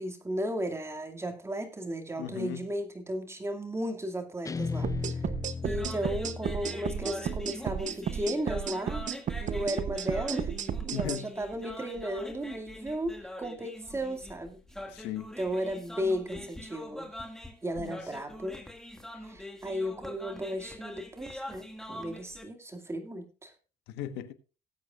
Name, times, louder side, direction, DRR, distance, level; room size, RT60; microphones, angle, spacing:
voice 1, 0.0-5.2 5.6-9.1 9.4-10.5 10.8-14.6 15.4-17.1 17.6-18.6 19.2-23.5, equal, 15° right, 2.3 m, -35 dB
voice 2, 2.2-2.6 10.9-11.3 14.9-15.3 17.8-18.0 23.9-24.3, left 10 dB, 85° left, 1.3 m, -37 dB
Guitar, 4.4-7.7, left 4 dB, 20° left, 0.5 m, -36 dB
sound 1, 4.8-11.2, right 8 dB, 45° right, 0.9 m, -33 dB
sound 2, 5.5-22.4, left 1 dB, 5° left, 2.1 m, -44 dB
19.0 x 8.5 x 2.5 m
cardioid pair, 110°, 17 cm